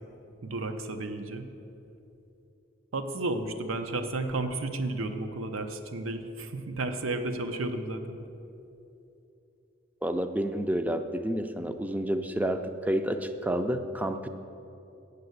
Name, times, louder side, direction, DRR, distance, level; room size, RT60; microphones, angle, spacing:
voice 1, 0.4-1.5 2.9-8.2, right 2 dB, 80° right, 8 dB, 0.7 m, -32 dB
voice 2, 10.0-14.3, right 1 dB, 10° right, 8 dB, 0.4 m, -29 dB
9.1 x 6.8 x 7.9 m, 2.9 s
head